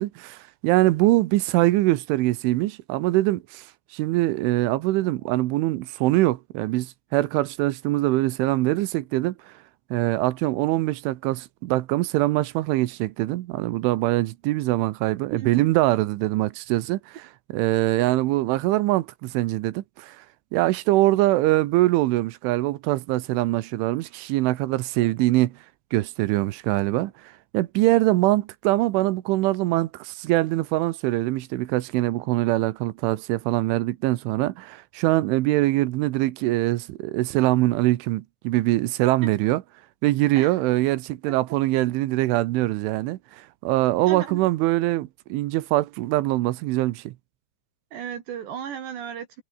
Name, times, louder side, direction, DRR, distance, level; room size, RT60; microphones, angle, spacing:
voice 1, 0.0-3.7 3.9-9.5 9.9-17.2 17.5-20.2 20.5-25.6 25.9-27.1 27.5-39.6 40.0-47.1, right 17 dB, 80° right, 3.4 m, -23 dB
voice 2, 44.1-44.5 47.9-49.4, right 9 dB, 65° right, 4.3 m, -34 dB
omnidirectional pair, 5.6 m